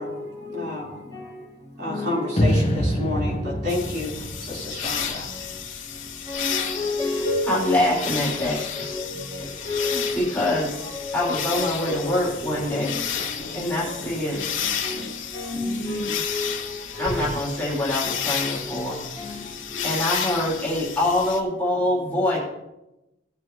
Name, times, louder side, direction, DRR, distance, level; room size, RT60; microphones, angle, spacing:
voice 1, 0.0-0.8 1.1-1.4 1.9-3.1 3.4-3.6 6.3-13.0 13.9-14.0 14.8-17.3 18.1-18.2 18.6-18.8 19.2-20.0, left 2 dB, 25° right, 4.0 m, -32 dB
voice 2, 0.5-1.0 1.8-5.3, left 2 dB, 55° right, 4.3 m, -30 dB
sound 1, 2.4-5.6, equal, 30° left, 1.2 m, -25 dB
sound 2, 3.7-21.4, left 7 dB, 80° left, 2.5 m, -32 dB
sound 3, 6.3-7.9 8.4-8.5 9.5-16.2, equal, 55° left, 1.1 m, -40 dB
voice 3, 7.5-8.9 9.4-9.5 9.8-10.8 11.1-14.4 17.0-19.0 19.2-19.4 19.8-22.4, left 1 dB, 10° left, 3.5 m, -25 dB
18.0 x 7.4 x 3.1 m
head